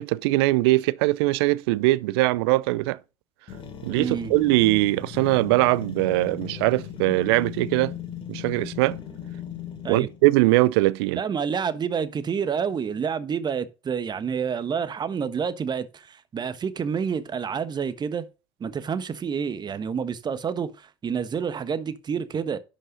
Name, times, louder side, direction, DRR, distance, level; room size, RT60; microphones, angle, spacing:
voice 1, 0.0-3.0 3.8-7.9 8.3-9.0 9.9-11.2, right 19 dB, 65° right, 0.5 m, -21 dB
sound 1, 3.5-10.3, left 9 dB, 40° left, 2.8 m, -37 dB
voice 2, 4.0-4.3 9.8-10.1 11.1-18.3 18.6-22.6, right 7 dB, 30° right, 1.2 m, -28 dB
11.0 x 5.5 x 5.1 m
hypercardioid pair, 70°, 14 cm